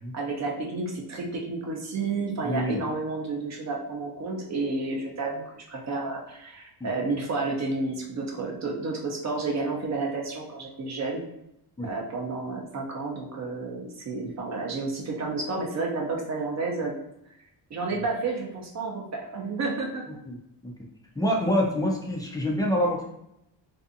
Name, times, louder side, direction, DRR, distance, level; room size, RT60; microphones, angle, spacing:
voice 1, 0.1-11.2 11.8-16.9 17.7-20.0, right 3 dB, 35° right, 0 dB, 0.6 m, -31 dB
voice 2, 2.4-2.8 11.8-11.9 17.9-18.0 20.3-20.4 20.6-20.7 21.2-23.0, equal, 10° left, -2 dB, 0.3 m, -26 dB
2.6 x 2.4 x 2.5 m, 0.81 s
cardioid pair, 120°, 45 cm